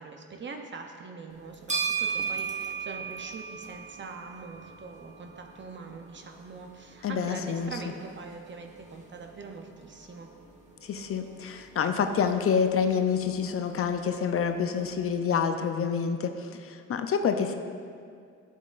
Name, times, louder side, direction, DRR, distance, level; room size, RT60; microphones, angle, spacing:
voice 1, 0.0-10.3, right 4 dB, 40° right, 3 dB, 0.7 m, -43 dB
sound 1, 1.3-15.2, right 6 dB, 25° right, 1.3 m, -39 dB
voice 2, 7.0-7.7 10.8-17.5, left 6 dB, 50° left, 7 dB, 0.5 m, -27 dB
10.5 x 7.4 x 2.5 m, 2.2 s
cardioid pair, 90°, 30 cm